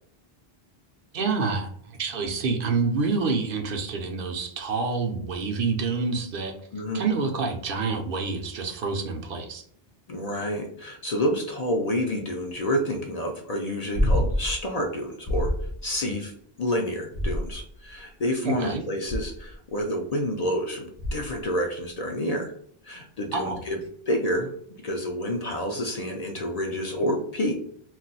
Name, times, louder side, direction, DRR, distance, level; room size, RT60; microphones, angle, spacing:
voice 1, 1.1-1.7 2.0-6.5 6.9-9.6 18.4-18.8 23.3-23.6, right 4 dB, 65° right, 4 dB, 0.7 m, -27 dB
voice 2, 6.7-7.0 10.1-15.6 15.8-16.3 16.6-22.5 22.8-23.8 24.1-24.5 24.8-27.6, equal, 50° left, 1 dB, 0.5 m, -28 dB
sound 1, 13.9-14.6 15.3-15.8 17.1-17.8 19.1-19.5 21.0-21.4 23.8-23.9, left 1 dB, 35° left, 0.8 m, -26 dB
2.3 x 2.2 x 3.9 m, 0.65 s
omnidirectional pair, 1.0 m